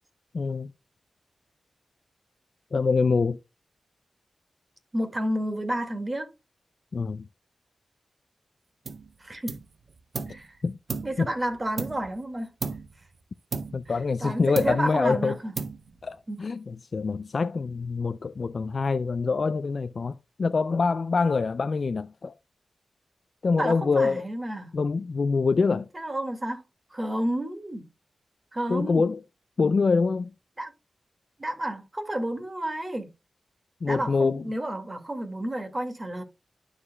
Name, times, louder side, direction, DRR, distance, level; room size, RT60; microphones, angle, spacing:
voice 1, 0.3-0.7 2.7-3.4 6.9-7.3 10.6-10.8 11.2-11.3 13.7-15.4 16.0-22.3 23.4-24.3 24.7-25.9 28.7-29.2 29.6-30.3 33.8-34.5, left 4 dB, 65° left, 0.3 m, -25 dB
voice 2, 4.9-6.3 9.2-9.5 10.3-10.5 11.0-12.5 14.2-15.5 16.3-16.4 23.6-24.7 25.9-26.6 26.9-27.8 28.5-29.1 30.6-30.7 31.4-33.1 33.9-36.2, right 1 dB, 35° right, 2.0 m, -31 dB
sound 1, 8.9-9.1 9.5-10.5 10.9-12.2 12.6-13.0 13.5-14.3 14.6-15.1 15.6-16.1, right 4 dB, 70° right, 0.7 m, -35 dB
12.0 x 4.8 x 2.3 m
cardioid pair, 50°, 0 cm